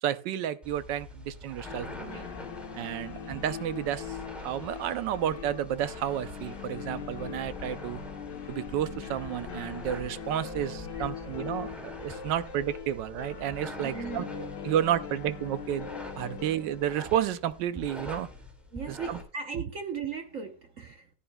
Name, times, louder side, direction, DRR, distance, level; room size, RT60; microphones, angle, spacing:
voice 1, 0.0-2.2 2.7-8.0 8.5-14.2 14.6-15.9 16.2-18.3 18.9-19.2, right 11 dB, 75° right, 1.3 m, -31 dB
sound 1, 0.6-19.2, left 1 dB, ahead, 2.0 m, -45 dB
sound 2, 1.6-18.4, left 7 dB, 65° left, 1.6 m, -42 dB
voice 2, 10.9-11.2 13.8-14.4 18.7-21.1, right 6 dB, 50° right, 1.1 m, -38 dB
15.0 x 9.9 x 2.3 m
omnidirectional pair, 2.0 m